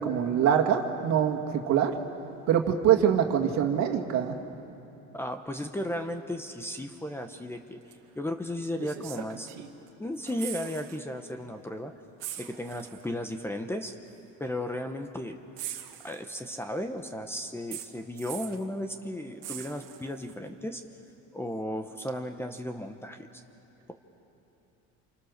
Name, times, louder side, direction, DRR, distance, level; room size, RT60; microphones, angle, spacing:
voice 1, 0.0-1.9 2.5-4.4, right 9 dB, 55° right, 4 dB, 2.2 m, -24 dB
voice 2, 5.1-7.8 8.2-9.5 10.0-11.9 12.4-13.9 14.4-15.4 16.0-20.8 21.3-23.2, left 1 dB, 5° left, 6 dB, 0.9 m, -35 dB
sound 1, 7.9-8.0 8.8-9.9 10.2-11.0 11.3-11.5 12.2-13.1 14.1-14.2 15.6-16.6 17.7-18.7 19.4-20.3 22.1-22.2, right 12 dB, 80° right, 2.0 m, -41 dB
29.5 x 27.5 x 6.6 m, 3.0 s
cardioid pair, 150°, 32 cm